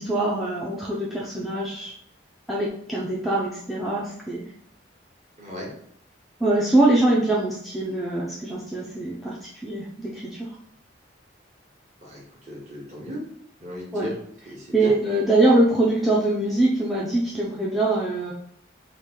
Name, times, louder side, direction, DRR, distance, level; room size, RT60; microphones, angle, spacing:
voice 1, 0.0-1.9 2.5-4.4 6.4-10.5 13.9-14.1 14.7-18.3, right 2 dB, ahead, -5 dB, 0.4 m, -23 dB
voice 2, 5.4-5.7 12.0-13.2 13.6-14.1 14.5-14.9, equal, 35° right, -3 dB, 1.0 m, -36 dB
3.0 x 2.4 x 3.5 m, 0.67 s
head